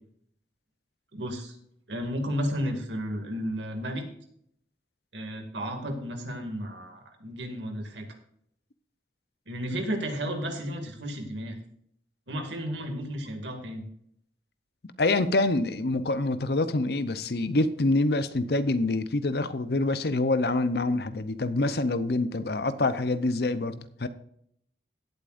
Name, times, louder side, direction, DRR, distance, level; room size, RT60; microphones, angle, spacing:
voice 1, 1.1-1.6 1.9-4.0 5.1-8.1 9.5-11.6 12.3-13.9, equal, 85° right, 3 dB, 2.3 m, -33 dB
voice 2, 15.0-24.1, left 2 dB, 60° left, 12 dB, 0.7 m, -26 dB
17.0 x 8.5 x 2.5 m, 0.69 s
head